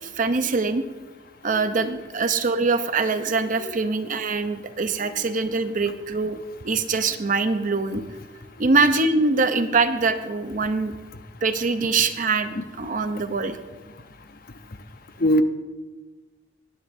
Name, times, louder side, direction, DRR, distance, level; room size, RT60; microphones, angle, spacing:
voice 1, 0.0-0.8 1.4-6.4 6.6-8.0 8.6-10.9 11.4-13.6, right 3 dB, 50° right, 9 dB, 0.7 m, -23 dB
voice 2, 1.5-1.6 3.7-3.8 5.1-5.2 12.6-12.7 15.2-15.4, equal, 55° left, 9 dB, 0.7 m, -21 dB
19.5 x 10.5 x 2.7 m, 1.2 s
head